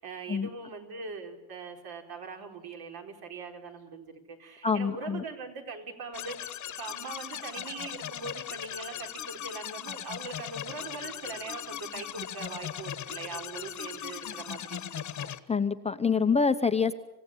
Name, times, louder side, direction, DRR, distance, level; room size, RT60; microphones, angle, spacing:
voice 1, 0.0-6.4 6.8-15.3, right 4 dB, 60° right, 4 dB, 4.2 m, -41 dB
voice 2, 4.6-5.2 15.5-16.9, left 5 dB, 15° left, 8 dB, 0.8 m, -26 dB
sound 1, 6.1-15.4, left 10 dB, 45° left, 1.3 m, -39 dB
27.0 x 16.5 x 10.0 m, 1.0 s
cardioid pair, 145°, 41 cm